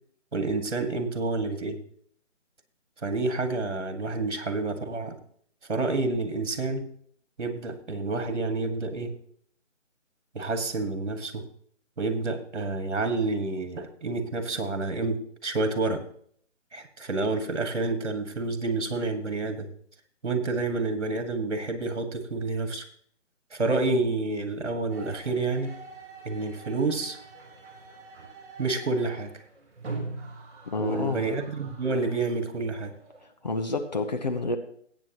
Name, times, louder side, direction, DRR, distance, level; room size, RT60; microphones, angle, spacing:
voice 1, 0.3-1.8 3.0-5.2 5.7-6.9 7.4-9.2 10.3-11.4 12.0-16.0 16.7-19.7 20.2-22.9 23.5-25.8 26.3-27.2 28.6-29.3 30.8-32.9, right 3 dB, 60° right, 8 dB, 2.0 m, -29 dB
sound 1, 24.9-33.3, right 3 dB, 40° right, 3.5 m, -43 dB
voice 2, 30.6-31.3 33.4-34.6, left 3 dB, 35° left, 5 dB, 0.8 m, -29 dB
19.0 x 8.7 x 3.0 m, 0.62 s
figure-of-eight pair, 155°, 38 cm